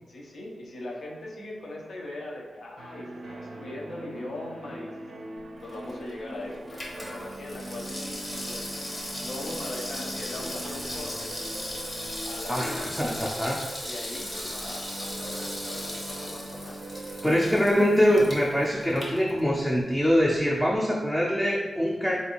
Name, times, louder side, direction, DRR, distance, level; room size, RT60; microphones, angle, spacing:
voice 1, 0.1-4.9 5.6-7.9 8.5-8.7 9.2-11.3 12.3-12.9 13.8-16.8, left 1 dB, 70° left, -2 dB, 0.6 m, -40 dB
sound 1, 2.8-19.5, right 2 dB, 75° right, 0.4 m, -41 dB
Water tap faucet / Sink (filling or washing), 5.6-19.9 20.2-20.3, left 1 dB, 35° left, 0.8 m, -38 dB
voice 2, 12.5-13.6 17.2-22.2, equal, 5° left, -4 dB, 0.4 m, -24 dB
3.3 x 2.5 x 2.9 m, 1.2 s
cardioid pair, 80°, 0 cm